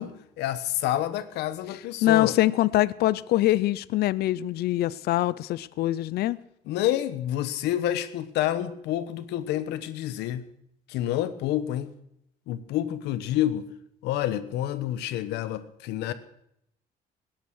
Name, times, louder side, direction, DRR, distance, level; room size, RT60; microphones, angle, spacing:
voice 1, 0.0-2.4 6.7-10.5 10.9-11.9 12.5-13.7 14.0-16.1, left 12 dB, 90° left, 1.2 m, -28 dB
voice 2, 2.0-6.4, left 15 dB, 70° left, 0.6 m, -24 dB
19.0 x 10.5 x 6.3 m
cardioid pair, 110°, 17 cm